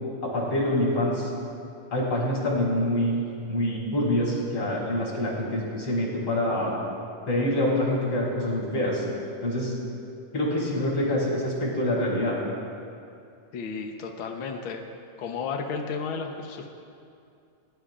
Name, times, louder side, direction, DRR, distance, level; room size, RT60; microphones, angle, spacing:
voice 1, 0.2-1.3 1.9-6.7 7.3-9.0 9.4-9.7 10.3-12.4, left 1 dB, 40° left, -4 dB, 5.0 m, -26 dB
voice 2, 13.5-14.8 15.2-16.7, left 5 dB, 80° left, 3 dB, 1.1 m, -33 dB
29.5 x 17.0 x 2.5 m, 2.5 s
omnidirectional pair, 3.8 m